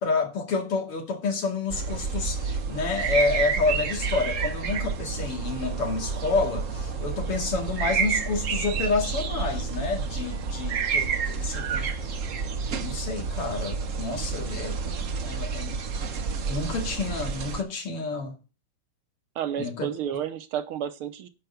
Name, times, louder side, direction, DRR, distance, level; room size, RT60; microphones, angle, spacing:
voice 1, 0.0-12.2 12.8-14.8 15.2-15.8 16.5-18.4 19.6-19.9, left 3 dB, 85° left, 3.2 m, -29 dB
sound 1, 1.7-17.6, right 5 dB, 55° right, 0.9 m, -29 dB
voice 2, 19.4-21.3, right 9 dB, 80° right, 1.8 m, -31 dB
10.5 x 4.7 x 7.1 m
omnidirectional pair, 2.4 m